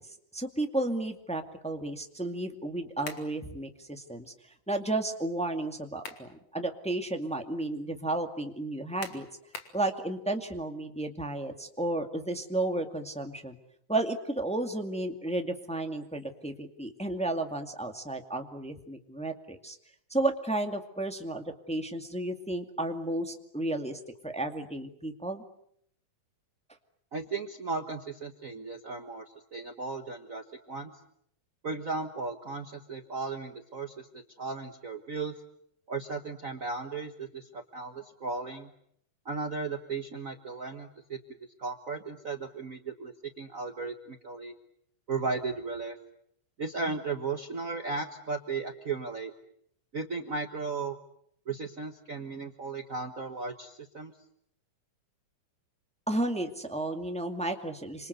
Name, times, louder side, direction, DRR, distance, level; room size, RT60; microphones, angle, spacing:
voice 1, 0.3-4.3 4.7-9.3 9.7-13.5 13.9-19.8 20.1-25.4 56.1-58.1, right 2 dB, 5° left, 5 dB, 1.3 m, -33 dB
sound 1, 3.0-3.3 5.7-6.3 6.8-6.9 9.0-9.8, left 5 dB, 50° left, 3.4 m, -42 dB
voice 2, 27.1-29.2 29.5-30.9 31.6-35.3 35.9-38.7 39.2-41.2 41.6-44.5 45.1-46.0 46.6-49.3 49.9-51.0 51.5-54.1, right 4 dB, 70° right, 6 dB, 0.7 m, -36 dB
27.5 x 26.5 x 8.0 m, 0.71 s
omnidirectional pair, 3.8 m